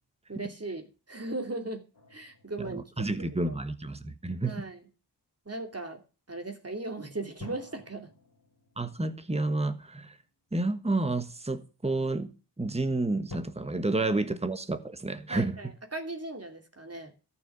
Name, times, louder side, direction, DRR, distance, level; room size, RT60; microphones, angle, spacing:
voice 1, 0.3-1.8 2.1-2.8 3.2-3.6 4.4-4.8 5.4-6.0 6.3-8.1 15.3-17.1, right 2 dB, 35° right, 2.9 m, -38 dB
sound 1, 1.9-4.5 7.4-10.7 11.4-11.5 13.3-13.4, left 1 dB, 60° left, 2.9 m, -50 dB
voice 2, 2.6-4.7 8.8-10.2 10.5-12.3 12.6-15.7, right 2 dB, 15° right, 1.4 m, -30 dB
14.0 x 6.2 x 7.5 m
wide cardioid pair, 65°, 42 cm